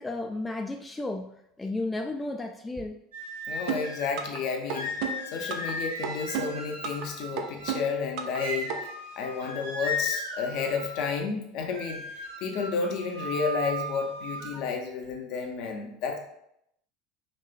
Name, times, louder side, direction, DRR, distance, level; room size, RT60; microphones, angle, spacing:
voice 1, 0.0-1.3 1.6-3.0, left 2 dB, 15° left, 4 dB, 0.3 m, -33 dB
sound 1, 3.1-4.2 4.7-7.9 8.3-11.1 11.7-14.6, left 1 dB, 80° right, 0.9 m, -36 dB
voice 2, 3.5-8.7 9.2-16.2, left 5 dB, 55° left, 3 dB, 0.7 m, -31 dB
sound 2, 3.7-4.4 4.7-5.7 6.0-7.1 7.4-8.4 8.7-8.8, right 7 dB, 55° right, 0.5 m, -32 dB
5.2 x 3.1 x 2.2 m, 0.76 s
figure-of-eight pair, 70°, 0 cm